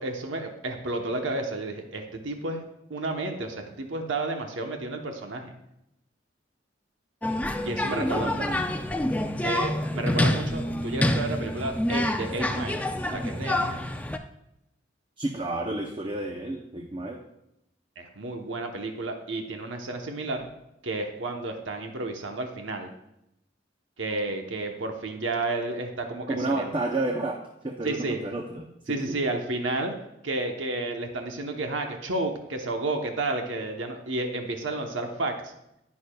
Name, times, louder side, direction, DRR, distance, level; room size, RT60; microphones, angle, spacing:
voice 1, 0.0-2.6 2.9-5.5 7.6-8.4 9.4-12.8 13.1-13.8 18.0-20.5 20.8-22.9 24.0-26.7 27.8-28.2 28.9-29.9 30.2-35.5, right 2 dB, 85° right, 4 dB, 1.0 m, -31 dB
sound 1, 7.2-14.2, left 1 dB, 10° left, 0.3 m, -27 dB
voice 2, 8.0-8.7 15.2-17.2 26.3-27.4 27.6-29.2, right 2 dB, 25° right, 2 dB, 0.6 m, -31 dB
11.0 x 9.4 x 2.3 m, 0.83 s
head